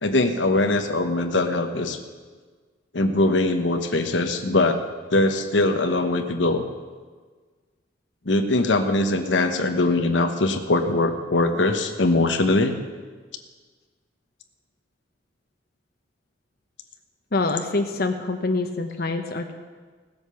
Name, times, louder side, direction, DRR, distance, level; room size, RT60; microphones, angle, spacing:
voice 1, 0.0-2.0 2.9-4.8 5.1-6.6 8.2-12.8, left 2 dB, 90° left, 6 dB, 1.1 m, -21 dB
voice 2, 17.3-19.5, left 3 dB, 60° left, 5 dB, 1.0 m, -25 dB
17.0 x 8.0 x 6.9 m, 1.5 s
head